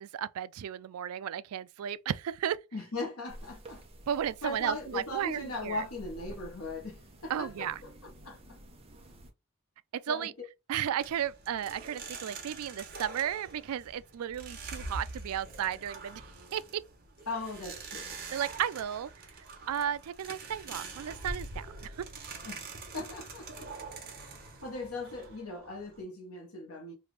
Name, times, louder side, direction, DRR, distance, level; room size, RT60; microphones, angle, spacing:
voice 1, 0.0-2.6 4.1-5.8 7.3-7.8 10.1-10.3 10.7-16.2 16.5-16.8 18.3-19.1 19.7-22.0, right 9 dB, 90° right, 0.3 m, -34 dB
voice 2, 2.7-3.8 4.4-8.6 10.1-10.3 17.3-18.2 22.4-22.7 22.9-23.7 24.6-26.9, left 2 dB, 85° left, 1.2 m, -39 dB
sound 1, 3.3-9.3, equal, 25° right, 0.8 m, -51 dB
sound 2, 11.0-26.0, right 3 dB, 45° right, 1.2 m, -44 dB
3.2 x 2.5 x 3.3 m
head